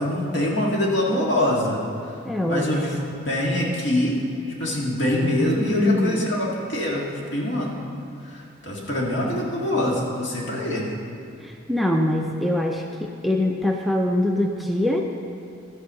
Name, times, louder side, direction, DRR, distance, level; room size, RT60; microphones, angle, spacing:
voice 1, 0.0-2.2 2.5-3.0 3.3-4.2 4.6-7.8 8.2-10.9, left 1 dB, 65° left, -3 dB, 1.8 m, -24 dB
voice 2, 2.2-2.7 3.0-3.1 5.8-6.3 11.4-15.0, left 1 dB, ahead, 1 dB, 0.4 m, -23 dB
13.0 x 4.6 x 7.4 m, 2.6 s
head